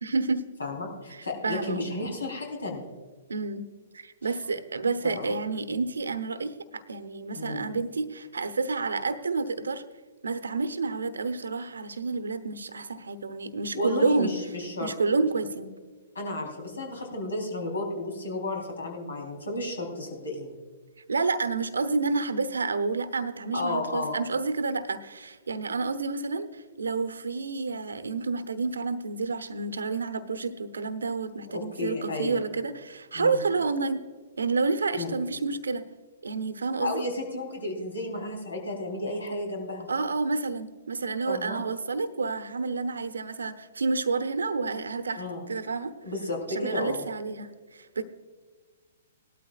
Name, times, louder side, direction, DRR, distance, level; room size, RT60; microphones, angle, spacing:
voice 1, 0.0-0.4 1.1-1.9 3.3-3.6 3.9-9.8 10.2-14.3 14.8-15.7 21.1-34.0 34.4-35.9 36.2-37.0 39.9-45.9 46.5-48.0, right 4 dB, 80° right, 11 dB, 0.9 m, -29 dB
voice 2, 0.6-2.9 5.0-5.4 7.3-7.7 13.7-14.9 16.2-20.6 23.5-24.2 31.5-32.4 33.1-33.4 35.0-35.1 36.8-39.9 41.3-41.6 45.2-45.4 46.0-47.1, left 2 dB, 80° left, 1 dB, 3.8 m, -32 dB
19.0 x 12.5 x 2.4 m, 1.4 s
figure-of-eight pair, 120°, 0 cm